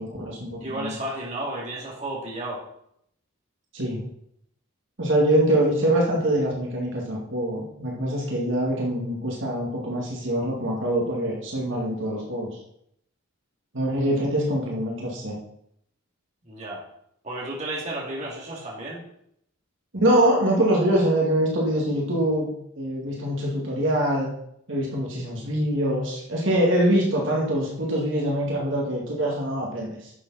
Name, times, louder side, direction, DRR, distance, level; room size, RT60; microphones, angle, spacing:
voice 1, 0.0-1.0 3.7-4.0 5.0-12.5 13.7-15.4 19.9-22.5 22.8-24.3 24.7-30.1, right 1 dB, 65° right, -3 dB, 2.4 m, -24 dB
voice 2, 0.6-2.6 16.5-16.8 17.2-19.0, right 1 dB, 35° right, -4 dB, 2.7 m, -32 dB
11.0 x 7.2 x 4.2 m, 0.73 s
head